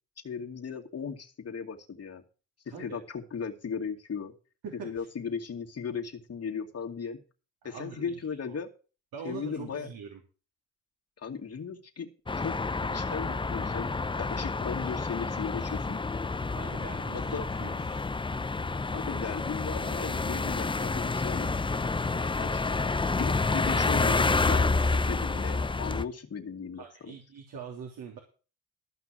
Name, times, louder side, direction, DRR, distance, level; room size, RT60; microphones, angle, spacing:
voice 1, 0.2-2.2 2.8-4.3 4.7-7.2 7.6-8.7 9.2-9.9 11.2-12.1 12.4-12.5 12.9-13.9 14.2-16.0 17.1-17.4 18.9-21.5 22.1-22.6 23.2-27.2, left 6 dB, 35° left, 2 dB, 2.5 m, -37 dB
voice 2, 2.7-3.0 4.6-5.1 7.6-8.2 8.4-8.6 9.1-10.2 16.5-18.0 26.8-28.2, right 6 dB, 60° right, 1 dB, 3.3 m, -43 dB
sound 1, 12.3-26.0, left 3 dB, 15° left, 0.7 m, -29 dB
14.5 x 5.9 x 7.5 m, 0.37 s
hypercardioid pair, 60°, 40 cm